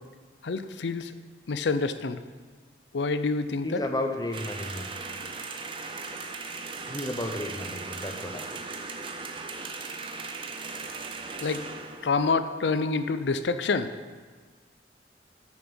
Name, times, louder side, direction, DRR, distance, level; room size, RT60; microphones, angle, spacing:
voice 1, 0.4-1.1 1.5-2.2 2.9-3.8 11.4-11.6 12.0-13.9, left 4 dB, 85° left, 10 dB, 0.6 m, -27 dB
voice 2, 3.6-4.9 6.9-8.6, left 1 dB, 20° left, 4 dB, 0.9 m, -33 dB
sound 1, 4.3-12.1, right 4 dB, 30° right, 0.7 m, -38 dB
9.0 x 7.2 x 6.2 m, 1.5 s
head